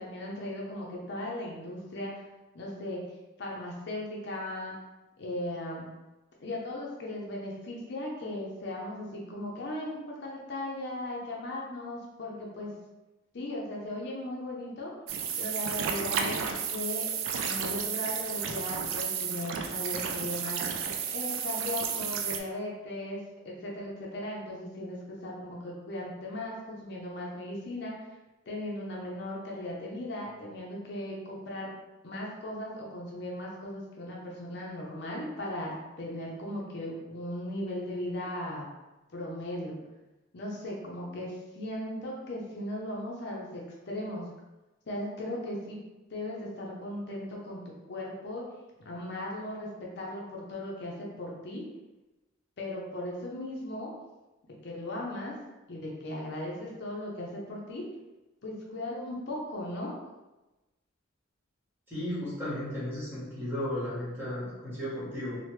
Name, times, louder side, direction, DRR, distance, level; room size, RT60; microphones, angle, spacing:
voice 1, 0.0-2.2 2.5-3.0 3.4-4.7 5.2-5.9 6.4-12.7 13.3-14.9 15.4-16.4 16.7-17.1 17.4-20.6 21.1-23.2 23.4-27.9 28.5-31.7 32.0-38.6 39.1-39.8 40.3-44.3 44.9-45.8 46.1-48.5 48.8-51.6 52.6-53.9 54.6-55.3 55.7-57.8 58.4-59.9, left 1 dB, 55° left, -3 dB, 0.5 m, -37 dB
sound 1, 15.1-22.4, right 7 dB, 75° right, 0.3 m, -32 dB
voice 2, 61.9-65.4, left 1 dB, 10° right, -9 dB, 1.1 m, -34 dB
2.9 x 2.1 x 3.2 m, 1.1 s
head